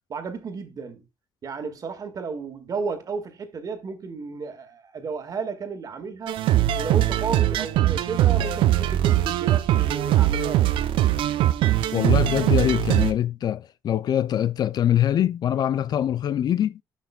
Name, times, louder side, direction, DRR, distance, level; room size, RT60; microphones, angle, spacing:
voice 1, 0.1-1.0 1.4-6.4 6.7-10.7, right 5 dB, 45° right, 1.8 m, -33 dB
sound 1, 6.3-13.1, right 13 dB, 75° right, 0.6 m, -21 dB
voice 2, 11.9-16.8, left 10 dB, 50° left, 0.4 m, -23 dB
11.5 x 5.9 x 2.3 m
cardioid pair, 100°, 9 cm